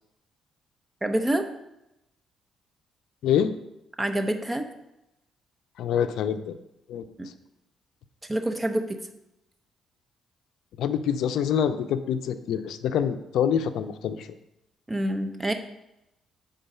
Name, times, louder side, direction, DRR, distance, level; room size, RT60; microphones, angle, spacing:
voice 1, 1.0-1.5 4.0-4.7 8.3-9.0 14.9-15.5, right 1 dB, 15° right, 6 dB, 0.8 m, -26 dB
voice 2, 5.8-6.6 6.9-7.0 10.8-14.3, left 8 dB, 80° left, 11 dB, 0.4 m, -26 dB
7.8 x 3.8 x 5.4 m, 0.88 s
cardioid pair, 90°, 0 cm